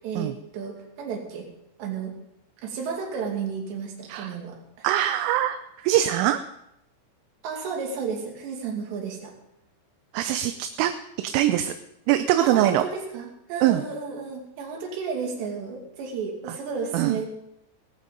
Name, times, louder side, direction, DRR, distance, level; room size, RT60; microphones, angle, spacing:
voice 1, 0.0-1.5 1.8-2.1 2.6-4.9 7.4-9.3 12.4-17.2, right 5 dB, 65° right, 1 dB, 4.4 m, -32 dB
voice 2, 4.8-6.4 10.1-10.5 10.8-10.9 11.3-11.7 12.1-12.8 13.6-13.8 16.9-17.2, right 13 dB, 85° right, 8 dB, 3.1 m, -22 dB
18.5 x 14.5 x 3.9 m, 0.82 s
omnidirectional pair, 5.7 m